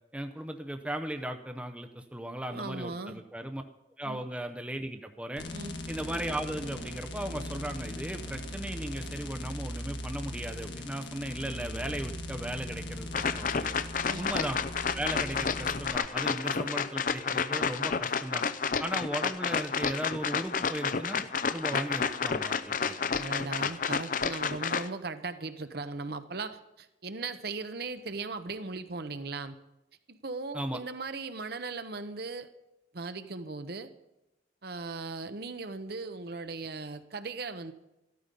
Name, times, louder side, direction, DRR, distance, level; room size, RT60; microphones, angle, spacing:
voice 1, 0.1-3.6 4.0-5.4 5.9-13.7 14.2-14.6 14.9-18.4 18.8-21.2 21.5-23.1 23.6-23.7 30.5-30.8, right 1 dB, 5° right, 6 dB, 0.6 m, -37 dB
voice 2, 2.5-3.2 4.0-4.2 5.5-5.8 14.1-14.3 23.2-29.6 30.1-32.5 32.9-33.9 34.6-37.7, right 3 dB, 55° right, 10 dB, 0.8 m, -38 dB
sound 1, 5.4-15.9, left 1 dB, 65° left, 1.5 m, -39 dB
sound 2, 13.1-24.9, left 6 dB, 45° left, 0.6 m, -30 dB
14.0 x 13.0 x 5.3 m, 0.93 s
head